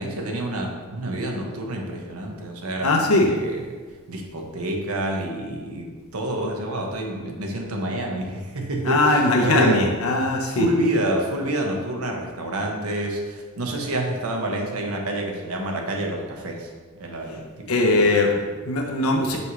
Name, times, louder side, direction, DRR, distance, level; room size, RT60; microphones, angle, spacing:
voice 1, 0.0-3.7 4.1-9.8 10.4-18.0 18.3-18.5, right 1 dB, 80° right, 1 dB, 1.0 m, -28 dB
voice 2, 2.8-3.3 8.8-10.7 17.7-18.3 18.7-19.4, left 2 dB, 80° left, 1 dB, 0.8 m, -20 dB
5.3 x 3.2 x 5.6 m, 1.4 s
head